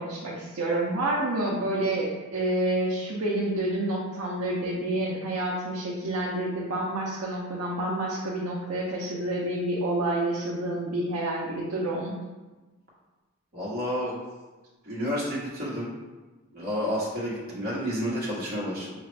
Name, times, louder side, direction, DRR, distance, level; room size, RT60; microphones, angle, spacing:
voice 1, 0.0-12.1, right 1 dB, 80° right, -5 dB, 0.6 m, -28 dB
voice 2, 13.5-14.2 14.8-15.9 16.5-18.9, equal, 45° right, -7 dB, 1.1 m, -30 dB
5.0 x 2.4 x 3.3 m, 1.2 s
head